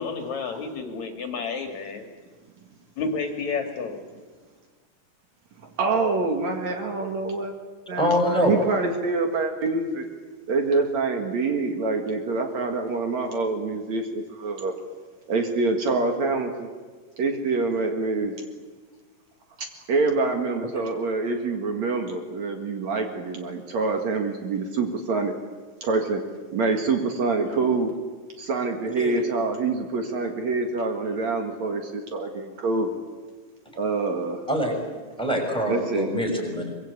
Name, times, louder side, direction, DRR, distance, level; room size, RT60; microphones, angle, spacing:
voice 1, 0.0-2.0 3.0-4.0 27.5-27.8, left 4 dB, 60° left, 5 dB, 3.0 m, -31 dB
voice 2, 5.8-7.5 7.9-10.1 10.5-14.7 15.3-16.7 17.2-18.3 19.9-25.4 25.8-26.2 26.5-28.0 28.4-32.9 33.8-34.4 35.7-36.1, right 3 dB, 60° right, 4 dB, 3.0 m, -26 dB
voice 3, 8.0-8.6 29.0-29.2 34.5-34.7 35.2-36.7, equal, ahead, 1 dB, 5.8 m, -24 dB
24.0 x 22.0 x 8.4 m, 1.4 s
omnidirectional pair, 3.8 m